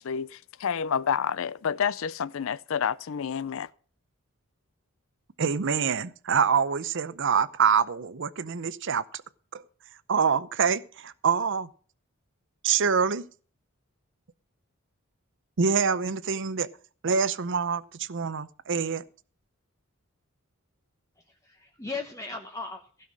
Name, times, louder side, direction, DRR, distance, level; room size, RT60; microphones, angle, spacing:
voice 1, 0.0-3.7, left 7 dB, 65° left, 0.5 m, -29 dB
voice 2, 5.4-9.2 9.5-9.6 10.1-11.7 12.6-13.2 15.6-16.7 17.0-19.0, right 6 dB, 60° right, 0.7 m, -25 dB
voice 3, 21.2-23.1, left 3 dB, 15° left, 0.9 m, -38 dB
16.0 x 5.7 x 7.5 m
head